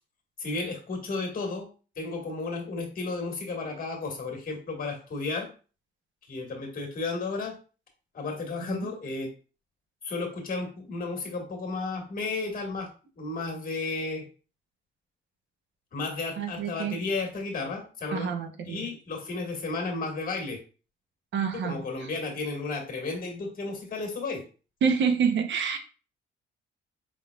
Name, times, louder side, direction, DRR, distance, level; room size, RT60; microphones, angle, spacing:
voice 1, 0.4-1.7 1.9-5.5 6.3-7.6 8.1-9.3 10.0-12.9 13.2-14.2 15.9-18.3 18.7-20.6 21.5-24.4, left 3 dB, 45° left, 2 dB, 1.6 m, -33 dB
voice 2, 16.4-17.0 18.1-18.9 21.3-22.1 24.8-25.8, right 6 dB, 70° right, 7 dB, 0.8 m, -28 dB
5.2 x 3.5 x 2.3 m, 0.35 s
cardioid pair, 90°, 20 cm